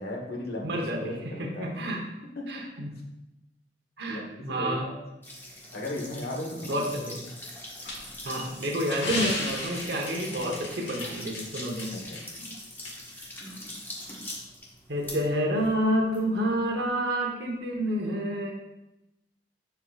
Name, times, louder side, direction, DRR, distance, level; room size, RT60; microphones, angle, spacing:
voice 1, 0.0-1.7 2.3-2.7 4.1-4.9 5.7-6.8 10.2-10.5 11.9-12.4, left 1 dB, 65° left, 0 dB, 1.2 m, -36 dB
voice 2, 0.6-2.0 2.5-2.9 4.0-4.9 6.6-7.2 8.2-11.9 14.9-18.5, equal, 70° right, 0 dB, 1.0 m, -29 dB
sound 1, 5.2-16.9, left 1 dB, 15° left, 1.3 m, -43 dB
sound 2, 7.8-11.8 12.2-12.3 12.8-12.9, left 1 dB, 80° left, 1.7 m, -35 dB
10.0 x 4.7 x 2.4 m, 0.95 s
head